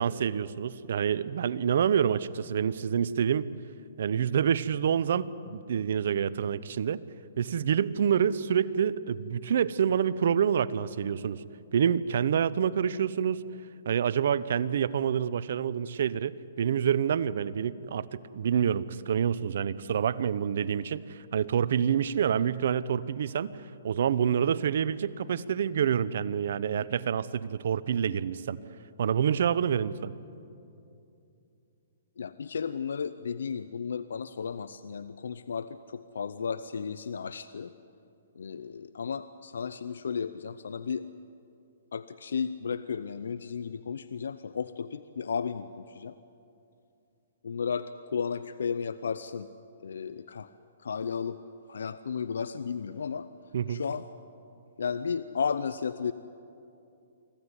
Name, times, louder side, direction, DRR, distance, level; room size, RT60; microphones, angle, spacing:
voice 1, 0.0-3.5 4.0-7.0 7.4-11.4 11.7-13.4 13.9-23.6 23.8-28.6 29.0-30.1 53.5-53.8, right 8 dB, 65° right, 17 dB, 0.8 m, -27 dB
voice 2, 32.2-37.7 38.4-41.1 41.9-46.1 47.4-49.5 49.8-50.5 50.8-51.4 51.7-53.3 53.7-54.0 54.8-56.1, left 6 dB, 80° left, 14 dB, 0.6 m, -34 dB
25.0 x 15.5 x 9.7 m, 2.7 s
hypercardioid pair, 145°, 0 cm